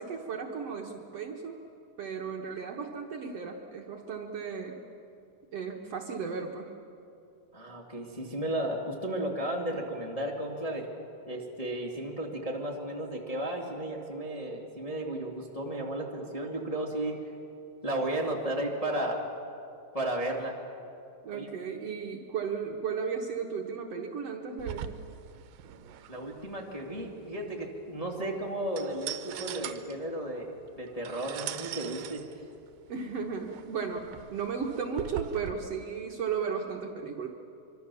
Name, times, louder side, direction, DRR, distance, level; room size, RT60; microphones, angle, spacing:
voice 1, 0.0-1.6 2.0-4.8 5.5-6.7 21.2-24.9 32.9-37.3, right 6 dB, 55° right, 1 dB, 2.0 m, -35 dB
voice 2, 7.5-10.9 11.3-17.3 17.8-19.2 19.9-20.6 21.3-21.5 26.1-32.2, right 1 dB, 15° left, -1 dB, 1.7 m, -34 dB
sound 1, 24.6-35.5, right 10 dB, 85° right, 2.6 m, -42 dB
25.0 x 25.0 x 6.9 m, 2.7 s
omnidirectional pair, 3.8 m